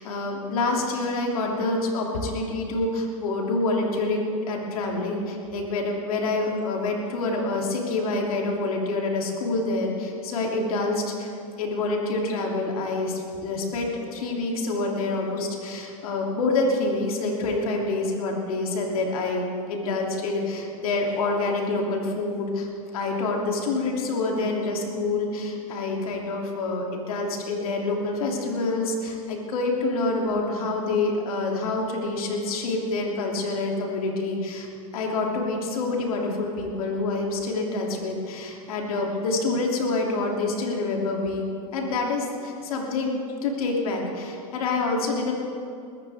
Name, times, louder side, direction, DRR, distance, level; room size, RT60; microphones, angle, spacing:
voice 1, 0.0-11.3 11.6-22.7 22.9-34.7 34.9-41.5 41.7-45.3, left 2 dB, 80° left, 0 dB, 2.8 m, -27 dB
21.5 x 14.0 x 3.5 m, 2.5 s
supercardioid pair, 115°, 18 cm